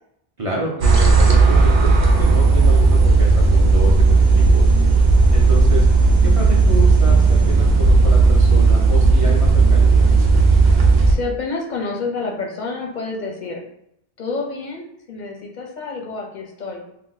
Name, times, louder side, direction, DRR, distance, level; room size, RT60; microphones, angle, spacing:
voice 1, 0.4-4.6 5.3-5.9 6.2-10.1, equal, 45° right, -3 dB, 0.4 m, -28 dB
sound 1, 0.8-11.1, right 3 dB, 70° right, 0.8 m, -13 dB
voice 2, 11.1-13.6 14.2-16.8, left 3 dB, 55° left, 0 dB, 0.6 m, -28 dB
2.5 x 2.1 x 3.8 m, 0.77 s
omnidirectional pair, 1.1 m